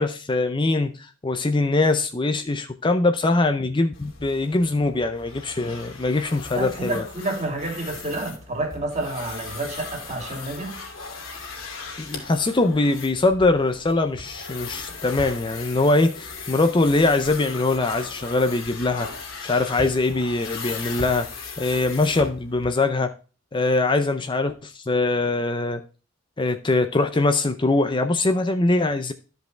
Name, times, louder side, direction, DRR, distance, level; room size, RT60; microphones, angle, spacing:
voice 1, 0.0-7.0 12.0-19.1 19.4-23.1 23.5-25.8 26.4-29.1, left 2 dB, 25° left, 0.5 m, -22 dB
Drawing A Line, 3.9-22.7, left 4 dB, 80° left, 2.7 m, -38 dB
voice 2, 6.5-10.8, right 2 dB, 35° right, 2.7 m, -29 dB
13.0 x 5.3 x 3.2 m
head